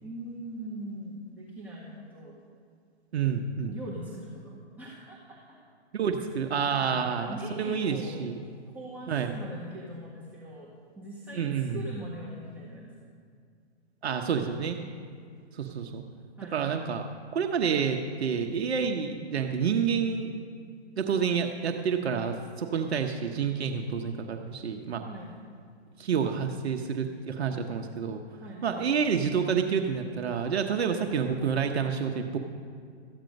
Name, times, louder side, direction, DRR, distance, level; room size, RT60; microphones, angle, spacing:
voice 1, 0.0-2.4 3.6-5.6 6.8-8.2 8.7-12.9 16.4-16.7 25.0-25.4 28.4-28.9, right 1 dB, 5° right, -8 dB, 1.5 m, -41 dB
voice 2, 3.1-3.8 5.9-8.4 9.1-9.3 11.3-11.8 14.0-14.8 15.5-16.0 16.5-17.0 17.3-20.3 21.0-25.0 26.0-28.2 28.6-32.4, right 6 dB, 70° right, 4 dB, 1.0 m, -28 dB
13.5 x 8.9 x 5.3 m, 2.2 s
hypercardioid pair, 145°, 33 cm